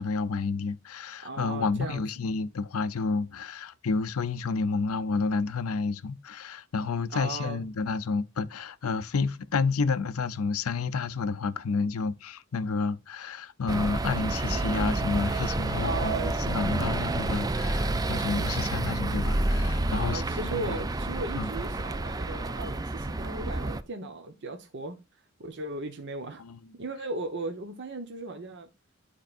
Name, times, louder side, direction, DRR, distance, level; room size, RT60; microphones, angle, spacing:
voice 1, 0.0-20.8 21.3-21.5 26.4-26.6, left 4 dB, 85° left, 0.6 m, -30 dB
voice 2, 1.2-2.0 7.1-7.6 15.8-16.9 19.9-25.0 25.4-26.4 26.8-28.7, right 2 dB, 55° right, 1.0 m, -36 dB
sound 1, 13.7-23.8, right 2 dB, 15° right, 0.4 m, -29 dB
12.0 x 4.5 x 2.5 m
head